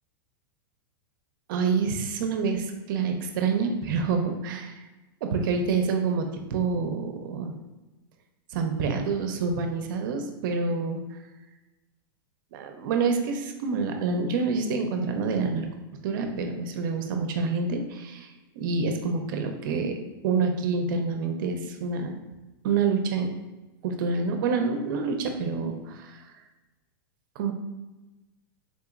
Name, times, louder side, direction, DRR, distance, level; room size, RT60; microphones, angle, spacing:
voice 1, 1.5-4.8 5.3-6.2 6.5-7.5 8.5-11.0 12.5-15.7 16.0-19.9 20.2-22.1 22.6-23.3 23.8-26.2 27.4-27.5, right 4 dB, 55° right, 5 dB, 0.5 m, -27 dB
3.7 x 2.8 x 2.4 m, 1.1 s
supercardioid pair, 155°, 13 cm